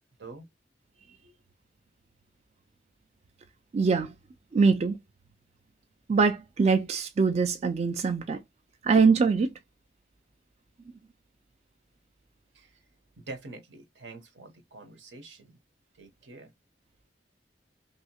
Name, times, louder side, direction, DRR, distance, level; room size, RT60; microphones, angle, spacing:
voice 1, 3.7-4.1 4.5-5.0 6.1-8.4 8.8-9.5, right 5 dB, 35° right, 0.3 m, -23 dB
voice 2, 13.3-15.6 16.0-16.5, right 3 dB, 80° right, 0.9 m, -45 dB
3.2 x 2.7 x 2.8 m
head